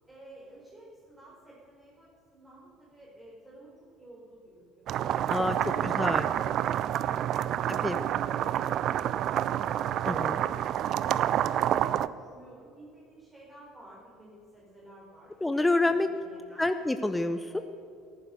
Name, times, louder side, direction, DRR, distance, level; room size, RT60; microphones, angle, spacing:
voice 1, 0.1-6.5 10.0-15.3 15.8-16.7 17.5-17.6, right 1 dB, 15° right, -6 dB, 4.9 m, -52 dB
sound 1, 4.9-12.1, right 11 dB, 50° right, 0.5 m, -28 dB
voice 2, 5.3-6.3 7.7-8.0 10.1-10.3 15.4-16.1 16.6-17.6, left 2 dB, 10° left, 10 dB, 0.8 m, -28 dB
14.5 x 14.0 x 6.7 m, 2.4 s
figure-of-eight pair, 60°, 0 cm